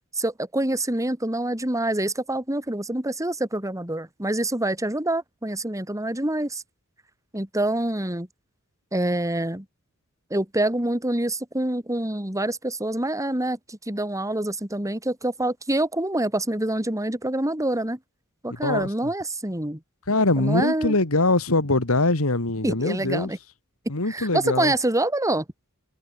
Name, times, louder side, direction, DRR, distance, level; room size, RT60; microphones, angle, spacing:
voice 1, 0.1-6.6 7.3-8.3 8.9-9.6 10.3-18.0 18.4-19.8 20.4-21.0 22.6-23.4 24.1-25.4, right 1 dB, 15° right, 3.4 m, -26 dB
voice 2, 18.6-19.1 20.1-23.3 23.9-24.7, left 2 dB, 75° left, 2.4 m, -23 dB
head